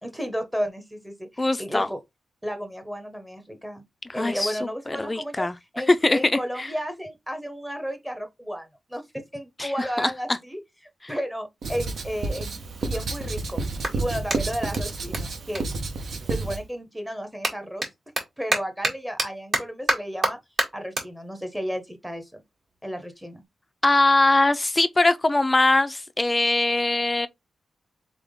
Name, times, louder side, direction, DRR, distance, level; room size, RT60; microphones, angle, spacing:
voice 1, 0.0-2.0 2.4-3.8 4.1-5.5 5.7-9.0 9.3-10.6 11.1-13.6 13.9-15.7 16.3-17.9 18.4-20.4 20.7-22.4 22.8-23.4, equal, 5° right, 0.9 m, -33 dB
voice 2, 1.4-1.9 4.1-4.6 4.9-5.5 5.9-6.7 9.6-9.7 10.0-10.1 23.8-27.3, left 2 dB, 20° left, 0.4 m, -21 dB
Writing, 11.6-16.6, right 3 dB, 65° right, 0.8 m, -30 dB
Clapping, 13.8-16.5 16.8-23.5, right 2 dB, 45° right, 1.8 m, -31 dB
3.8 x 3.6 x 3.6 m
wide cardioid pair, 135°, 0 cm